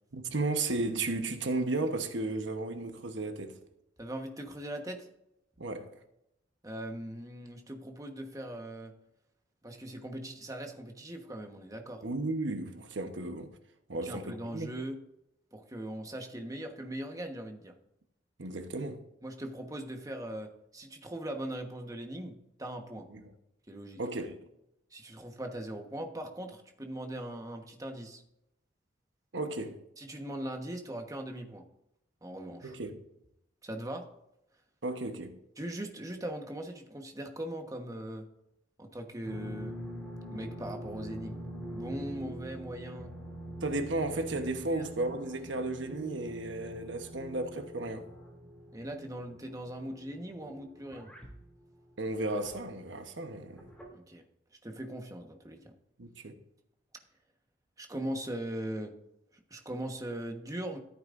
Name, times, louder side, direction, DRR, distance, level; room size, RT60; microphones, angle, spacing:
voice 1, 0.1-3.6 5.6-5.9 12.0-13.5 13.9-14.7 18.4-19.0 23.1-23.2 24.0-24.4 29.3-29.8 32.6-33.0 34.8-35.4 43.6-48.1 52.0-53.6 56.0-56.4, right 2 dB, 75° right, 1.1 m, -34 dB
voice 2, 4.0-5.1 6.6-8.9 9.6-12.0 14.0-15.0 15.5-17.7 19.2-22.3 22.6-23.1 23.7-24.0 24.9-28.2 30.0-31.6 32.2-32.8 33.6-34.0 35.6-38.3 38.8-39.8 40.3-41.4 41.7-43.1 44.4-44.8 48.7-51.1 53.9-54.2 54.6-55.7 57.8-58.9 59.5-60.8, right 1 dB, 20° right, 1.2 m, -40 dB
sound 1, 39.2-52.7 53.4-53.9, right 1 dB, 5° left, 2.8 m, -44 dB
14.0 x 8.9 x 2.6 m
head